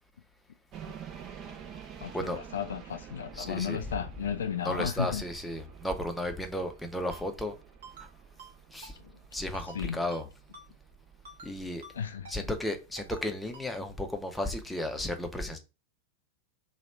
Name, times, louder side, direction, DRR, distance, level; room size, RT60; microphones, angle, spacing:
sound 1, 0.7-14.8, right 8 dB, 30° right, 0.6 m, -50 dB
voice 1, 2.0-5.2 9.0-9.1 9.6-10.0 11.9-12.5, left 7 dB, 65° left, 0.4 m, -34 dB
voice 2, 3.3-3.8 4.6-7.5 8.7-9.0 9.3-10.3 11.4-11.8 12.3-15.6, left 1 dB, 5° left, 0.7 m, -34 dB
Ringtone, 7.1-7.2 7.8-8.1 8.4-8.5 8.8-9.0 9.5-9.8 10.1-10.2 10.5-10.7 11.2-11.5 11.8-11.9 12.2-12.4 13.0-13.2 13.5-13.7, right 3 dB, 60° right, 1.0 m, -48 dB
3.1 x 2.4 x 4.2 m
figure-of-eight pair, 90°, 0 cm